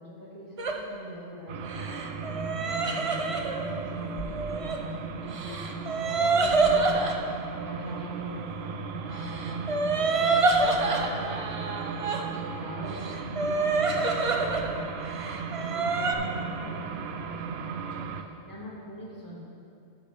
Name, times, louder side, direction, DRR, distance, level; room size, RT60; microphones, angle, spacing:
voice 1, 0.0-15.0 15.5-19.4, left 1 dB, 15° left, -7 dB, 2.1 m, -42 dB
sound 1, 0.6-0.8 1.7-4.8 5.3-7.2 9.2-12.2 12.8-14.7 15.0-16.1, right 3 dB, 40° right, 0.5 m, -27 dB
sound 2, 1.5-18.2, right 5 dB, 70° right, 0.8 m, -36 dB
7.0 x 6.0 x 7.6 m, 2.6 s
omnidirectional pair, 1.2 m